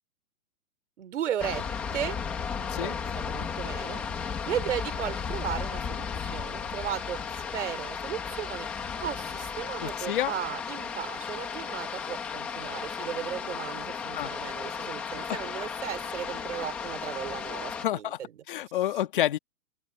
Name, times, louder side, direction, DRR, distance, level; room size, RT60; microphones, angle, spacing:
voice 1, 1.0-1.7 1.9-2.2 2.8-4.0 4.4-7.2 7.5-8.7 9.0-18.3, right 10 dB, 50° right, 3.4 m, -35 dB
sound 1, 1.4-17.9, left 6 dB, 5° left, 0.7 m, -35 dB
voice 2, 9.8-10.3 14.1-14.3 17.8-18.2 18.5-19.4, left 12 dB, 35° left, 1.5 m, -28 dB
open air
hypercardioid pair, 170°, 46 cm